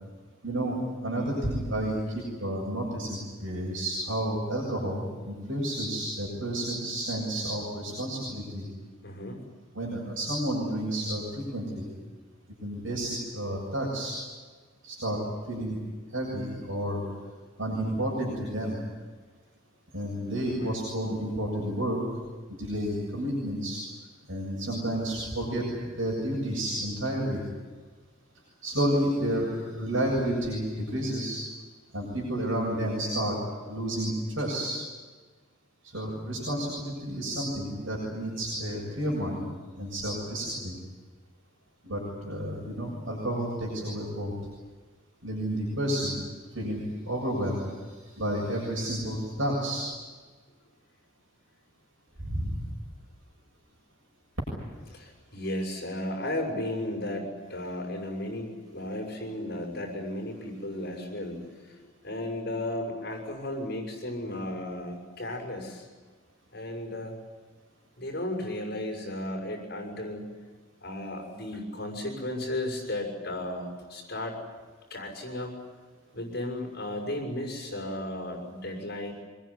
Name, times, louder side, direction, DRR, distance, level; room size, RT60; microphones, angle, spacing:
voice 1, 0.4-8.6 9.7-11.9 12.6-14.2 14.8-15.2 15.5-15.8 16.1-17.0 17.6-18.8 19.9-22.0 22.5-23.8 24.3-27.4 28.6-31.4 31.9-33.4 33.6-34.8 35.8-39.4 39.8-40.8 41.8-44.3 45.2-46.1 46.5-47.7 48.0-49.8 52.2-52.6, right 1 dB, 75° right, -3 dB, 7.2 m, -31 dB
voice 2, 9.0-9.4 20.5-20.8 54.9-65.9 66.5-67.1 68.0-70.3 70.8-74.4 74.9-75.6 76.1-79.1, left 1 dB, 50° left, 1 dB, 6.2 m, -34 dB
25.0 x 21.0 x 9.9 m, 1.4 s
head